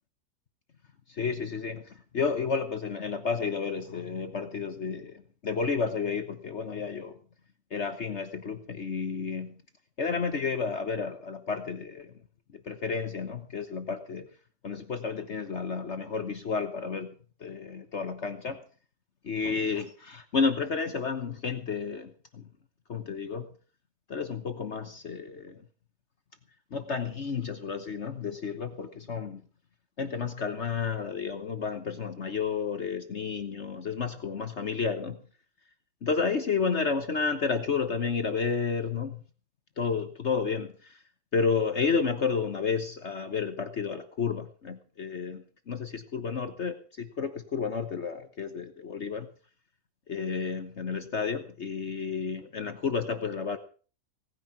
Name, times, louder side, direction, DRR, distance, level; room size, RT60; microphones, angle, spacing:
voice 1, 1.1-7.2 7.7-9.6 10.0-12.1 12.5-14.3 14.6-17.1 17.4-18.6 19.2-22.5 22.9-23.5 24.1-25.6 26.7-29.4 30.0-35.2 36.0-39.2 39.8-41.0 41.3-49.3 50.1-53.6, left 5 dB, 50° left, 10 dB, 1.3 m, -31 dB
18.0 x 9.9 x 5.9 m, 0.39 s
omnidirectional pair, 1.7 m